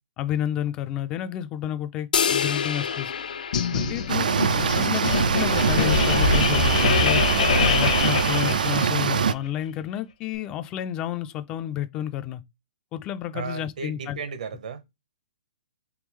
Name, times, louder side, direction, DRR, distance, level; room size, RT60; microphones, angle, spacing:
voice 1, 0.2-3.1 3.7-7.2 7.7-12.4 12.9-14.2, left 11 dB, 20° left, 0.3 m, -31 dB
sound 1, 2.1-4.7, left 7 dB, 85° left, 0.7 m, -28 dB
sound 2, 3.5-9.2, left 5 dB, 70° left, 0.9 m, -24 dB
voice 2, 3.7-4.0 13.3-14.8, right 6 dB, 70° right, 0.9 m, -35 dB
sound 3, 4.1-9.3, right 6 dB, 90° right, 0.4 m, -23 dB
3.5 x 3.4 x 3.1 m
hypercardioid pair, 160°, 4 cm